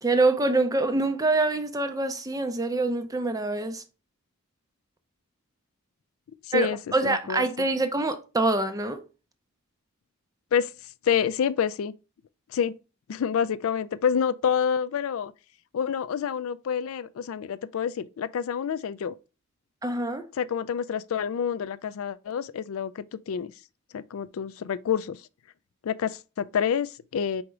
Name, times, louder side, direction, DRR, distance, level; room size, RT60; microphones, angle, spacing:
voice 1, 0.0-3.8 6.5-9.0 19.8-20.3, right 2 dB, 15° right, 0.5 m, -25 dB
voice 2, 6.5-7.7 10.5-10.7 11.0-11.9 12.5-12.7 13.1-15.3 15.7-19.2 20.4-23.5 23.9-25.2 25.8-27.4, left 7 dB, 70° left, 0.3 m, -28 dB
4.9 x 3.5 x 3.1 m
head